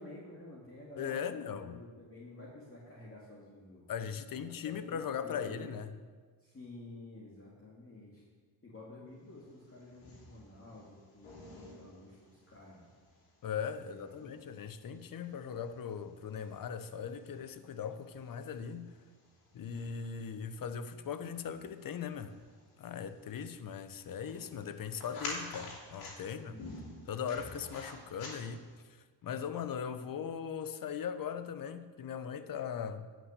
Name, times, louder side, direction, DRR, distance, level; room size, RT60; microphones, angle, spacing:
voice 1, 0.0-5.7 6.4-8.2 8.6-12.9 13.8-14.3 26.4-27.1, left 2 dB, 25° left, -5 dB, 2.4 m, -51 dB
voice 2, 1.0-1.8 3.9-5.9 13.4-18.9 19.5-22.3 22.8-26.6 27.1-28.6 28.9-33.1, left 7 dB, 45° left, 11 dB, 0.9 m, -39 dB
sound 1, 9.4-28.8, left 2 dB, 85° left, 3.2 m, -51 dB
9.4 x 6.1 x 6.6 m, 1.5 s
supercardioid pair, 55°, 48 cm